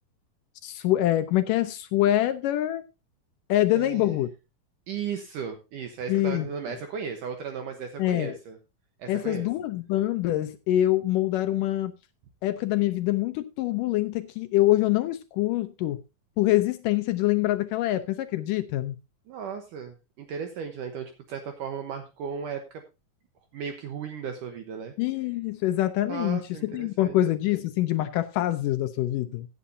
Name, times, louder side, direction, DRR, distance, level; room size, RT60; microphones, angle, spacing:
voice 1, 0.6-2.8 3.5-4.3 6.1-6.5 8.0-8.4 9.1-11.9 12.4-16.0 16.4-19.0 25.0-26.4 26.7-29.5, left 14 dB, 75° left, 2.0 m, -25 dB
voice 2, 3.7-4.2 4.9-8.6 9.0-9.5 19.3-22.8 23.5-24.9 26.1-27.2, right 7 dB, 70° right, 2.4 m, -36 dB
16.5 x 8.6 x 2.7 m
omnidirectional pair, 4.4 m